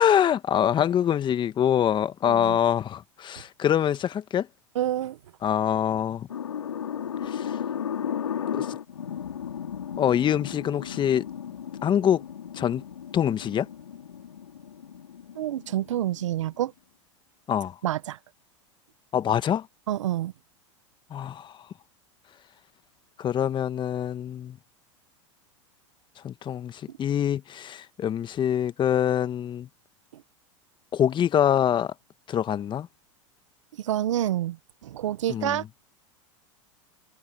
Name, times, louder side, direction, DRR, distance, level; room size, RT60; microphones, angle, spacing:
voice 1, 0.0-4.5 5.4-6.3 7.2-7.6 8.5-8.7 10.0-11.2 11.8-12.2 12.5-12.8 13.1-13.7 17.5-17.7 19.1-19.7 21.1-21.5 23.2-24.6 26.2-29.7 30.9-31.9 32.3-32.9 35.3-35.6, left 9 dB, 30° left, 1.5 m, -25 dB
voice 2, 2.2-2.6 4.7-5.2 15.3-16.7 17.8-18.2 19.9-20.3 30.1-30.2 33.8-34.6 34.8-35.6, right 12 dB, 75° right, 1.5 m, -28 dB
sound 1, 6.3-16.7, left 8 dB, 85° left, 5.0 m, -35 dB
hypercardioid pair, 95°, 16 cm